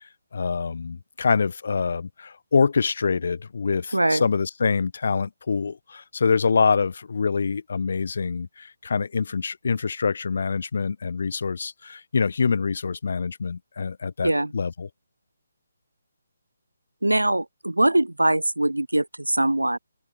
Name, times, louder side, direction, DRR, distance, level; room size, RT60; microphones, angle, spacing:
voice 1, 0.3-14.9, left 5 dB, 50° left, 1.6 m, -25 dB
voice 2, 3.9-4.2 14.2-14.5 17.0-19.8, right 1 dB, 80° right, 0.3 m, -22 dB
open air
figure-of-eight pair, 145°, 0 cm